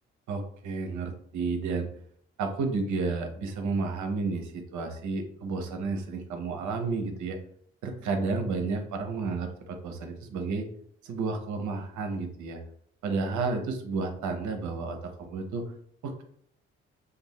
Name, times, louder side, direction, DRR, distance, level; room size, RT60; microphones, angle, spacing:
voice 1, 0.3-1.9 2.4-7.4 7.8-10.7 11.0-12.6 13.0-15.6 16.0-16.2, right 4 dB, 60° right, 5 dB, 0.7 m, -31 dB
2.6 x 2.3 x 3.1 m, 0.64 s
hypercardioid pair, 40°, 34 cm